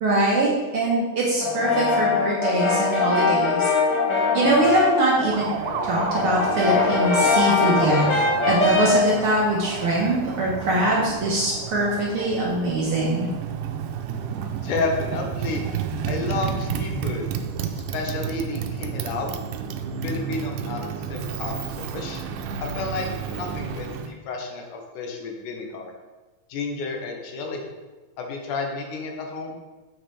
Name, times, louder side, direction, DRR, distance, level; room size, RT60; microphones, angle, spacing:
voice 1, 0.0-3.7 4.3-5.5 5.8-8.1 8.4-13.3, right 2 dB, 60° right, -5 dB, 1.5 m, -23 dB
Brass instrument, 1.4-5.0 5.4-9.0, left 4 dB, 50° left, 1.3 m, -22 dB
Motorcycle, 5.2-24.1, right 7 dB, 85° right, 2.1 m, -31 dB
voice 2, 14.6-15.6 16.1-17.2 17.7-19.4 20.0-22.2 22.6-25.9 26.5-27.6 28.2-29.6, left 3 dB, 85° left, 2 dB, 2.4 m, -31 dB
7.2 x 6.1 x 3.2 m, 1.2 s
omnidirectional pair, 3.5 m